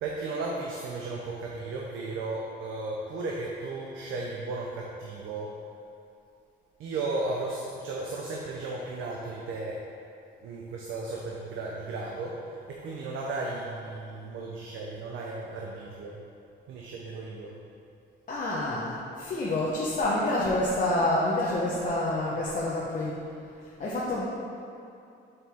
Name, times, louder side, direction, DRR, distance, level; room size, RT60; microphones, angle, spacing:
voice 1, 0.0-5.7 6.8-9.9 10.4-16.2 16.7-17.5, right 3 dB, 80° right, -2 dB, 0.7 m, -35 dB
voice 2, 18.3-23.1 23.8-24.2, left 1 dB, 40° left, -6 dB, 0.9 m, -27 dB
6.8 x 4.4 x 3.5 m, 2.6 s
cardioid pair, 90°, 20 cm